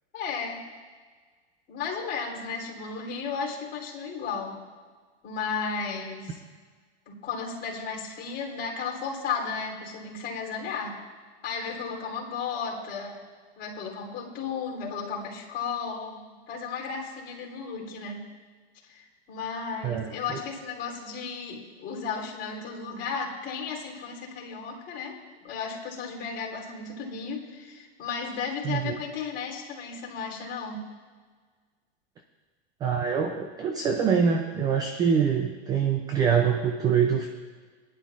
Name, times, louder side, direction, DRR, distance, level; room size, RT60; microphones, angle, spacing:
voice 1, 0.1-0.6 1.7-4.6 5.2-6.4 7.1-11.0 11.4-13.2 13.6-18.3 18.8-30.9, left 5 dB, 30° left, -2 dB, 3.2 m, -34 dB
voice 2, 19.8-20.4 28.6-29.0 32.8-37.3, right 7 dB, 15° right, 4 dB, 0.3 m, -25 dB
19.5 x 11.0 x 2.4 m, 1.5 s
supercardioid pair, 145°, 33 cm